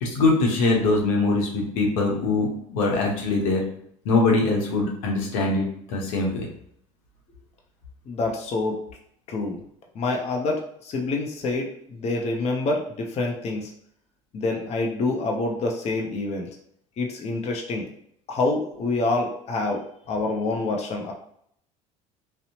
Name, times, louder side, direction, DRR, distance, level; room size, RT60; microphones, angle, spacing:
voice 1, 0.0-3.6 4.0-6.5, left 3 dB, 80° left, -1 dB, 0.8 m, -22 dB
voice 2, 8.1-8.8 9.3-9.6 9.9-13.7 14.3-16.5 17.0-17.9 18.3-21.1, left 2 dB, 40° left, 1 dB, 0.6 m, -27 dB
2.6 x 2.0 x 2.8 m, 0.68 s
supercardioid pair, 85°, 17 cm